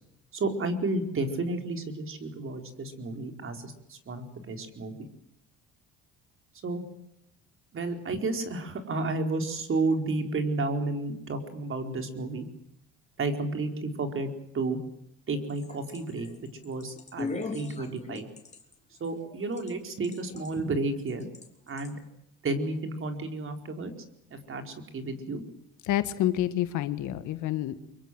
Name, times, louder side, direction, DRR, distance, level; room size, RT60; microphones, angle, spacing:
voice 1, 0.3-5.1 6.6-6.8 7.7-12.5 13.2-14.3 14.5-14.8 15.3-16.3 16.6-18.3 19.0-21.3 21.7-21.9 22.4-23.9 24.3-25.4, right 2 dB, 40° right, 6 dB, 4.7 m, -31 dB
sound 1, 15.3-19.7 20.0-20.6 21.1-21.5 21.8-21.9, left 3 dB, 20° left, 4.0 m, -38 dB
voice 2, 25.8-27.8, left 13 dB, 70° left, 11 dB, 1.9 m, -28 dB
25.0 x 23.0 x 7.8 m, 0.78 s
supercardioid pair, 90°, 31 cm